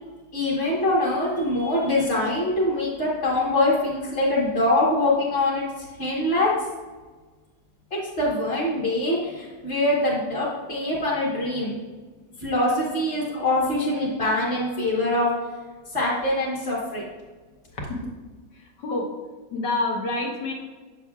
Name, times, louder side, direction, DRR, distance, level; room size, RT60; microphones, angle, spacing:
voice 1, 0.3-5.6 6.0-6.5 7.9-11.7 12.4-15.3 15.9-17.0, left 1 dB, 35° left, -8 dB, 1.5 m, -24 dB
voice 2, 17.7-18.1 18.5-19.1 19.5-20.5, left 2 dB, 75° left, 0 dB, 1.8 m, -28 dB
7.4 x 6.8 x 2.4 m, 1.3 s
omnidirectional pair, 2.0 m